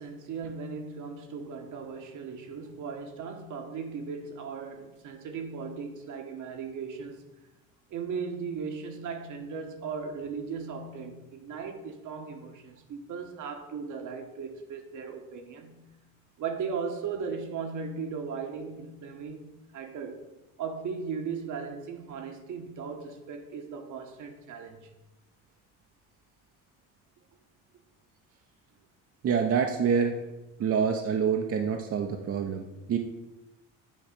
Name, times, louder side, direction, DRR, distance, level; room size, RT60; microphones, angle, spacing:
voice 1, 0.0-7.2 7.9-15.9 16.4-20.3 20.6-24.9, right 5 dB, 60° right, 1.3 m, -37 dB
voice 2, 29.2-30.1 30.6-33.0, right 6 dB, 45° right, 0.8 m, -26 dB
8.8 x 3.3 x 6.6 m
supercardioid pair, 90°, 33 cm